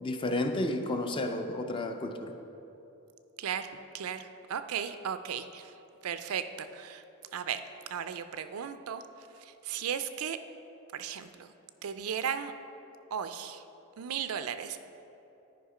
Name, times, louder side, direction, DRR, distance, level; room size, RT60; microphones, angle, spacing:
voice 1, 0.0-2.3, left 1 dB, 20° left, 6 dB, 0.4 m, -31 dB
voice 2, 3.4-5.7 6.0-7.0 7.3-7.6 7.9-9.0 9.6-10.4 10.9-11.5 11.8-12.5 13.1-13.6 14.0-14.8, right 8 dB, 75° right, 10 dB, 0.4 m, -35 dB
10.0 x 4.9 x 4.9 m, 2.9 s
head